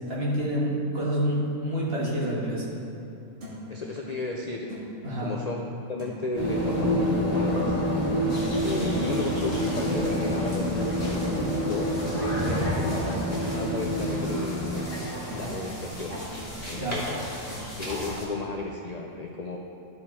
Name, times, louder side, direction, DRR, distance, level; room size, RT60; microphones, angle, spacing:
voice 1, 0.1-2.7 5.0-5.4 16.7-17.0, equal, 45° right, -5 dB, 1.8 m, -28 dB
sound 1, 2.2-2.4 2.9-3.0 3.4-3.7 4.7-4.9 6.0-6.3 8.0-8.2 8.9-9.1 9.7-9.9 10.4-10.7 11.2-11.4 12.8-12.9 13.3-13.6 13.9-14.2 14.8-14.9 15.3-15.6 15.9-16.3 17.5-17.7, left 1 dB, 60° right, 1.9 m, -42 dB
voice 2, 3.7-4.7 5.2-5.6 5.9-7.8 8.6-15.0 15.3-16.2 16.7-17.2 17.8-19.6, left 2 dB, 75° left, 1 dB, 0.3 m, -34 dB
sound 2, 6.3-14.8, equal, 20° right, 2.2 m, -27 dB
sound 3, 8.3-18.2, equal, 10° left, 2.1 m, -35 dB
13.0 x 4.9 x 4.2 m, 2.7 s
omnidirectional pair, 1.4 m